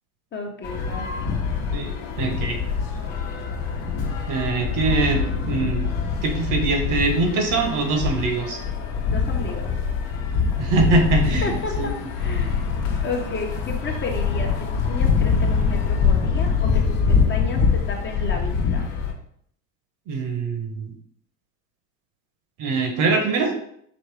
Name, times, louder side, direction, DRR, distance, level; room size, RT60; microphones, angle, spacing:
voice 1, 0.3-1.0 9.1-9.7 11.4-12.6 13.0-18.9, left 3 dB, 30° left, 2 dB, 0.9 m, -32 dB
sound 1, 0.6-19.1, left 5 dB, 60° left, 1.0 m, -24 dB
voice 2, 1.7-2.6 4.3-5.8 6.2-8.6 10.6-12.1 20.1-20.9 22.6-23.5, right 3 dB, 55° right, 4 dB, 1.1 m, -23 dB
5.2 x 2.7 x 3.3 m, 0.67 s
supercardioid pair, 100°, 38 cm